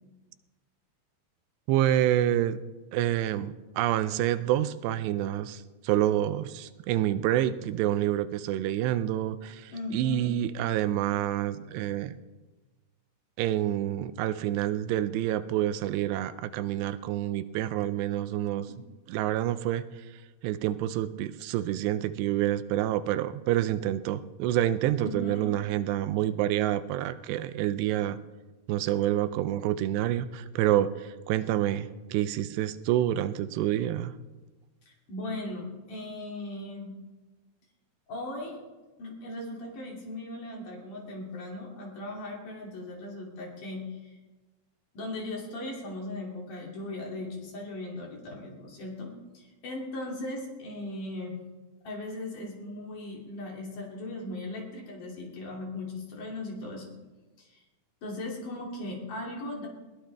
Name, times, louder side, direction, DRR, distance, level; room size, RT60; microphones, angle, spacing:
voice 1, 1.7-2.6 2.9-12.1 13.4-18.7 19.1-19.8 20.4-28.2 28.7-34.1, right 12 dB, 85° right, 13 dB, 2.7 m, -28 dB
voice 2, 9.7-10.3 18.7-18.8 25.0-25.5 34.9-36.9 38.1-38.6 39.0-44.2 44.9-49.1 49.3-51.4 51.8-56.9 57.4-57.6 58.0-59.7, left 2 dB, 50° left, -1 dB, 4.1 m, -38 dB
20.5 x 18.0 x 3.5 m, 1.2 s
omnidirectional pair, 4.9 m